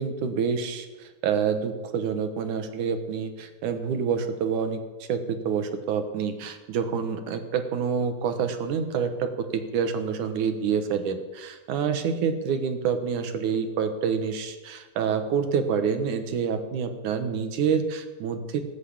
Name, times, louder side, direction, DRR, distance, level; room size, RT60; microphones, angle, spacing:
voice 1, 0.0-4.8 5.1-18.6, right 6 dB, 65° right, 8 dB, 2.4 m, -27 dB
19.5 x 8.3 x 8.6 m, 1.2 s
omnidirectional pair, 4.3 m